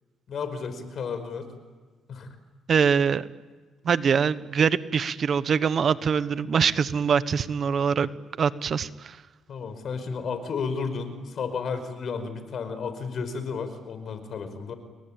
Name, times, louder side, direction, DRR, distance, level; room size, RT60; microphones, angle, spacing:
voice 1, 0.3-1.5 2.1-2.3 9.5-14.7, left 5 dB, 60° left, 10 dB, 5.0 m, -32 dB
voice 2, 2.7-3.3 3.8-8.1 8.4-9.2, right 6 dB, 50° right, 14 dB, 1.2 m, -23 dB
30.0 x 22.5 x 9.0 m, 1.4 s
cardioid pair, 90°, 0 cm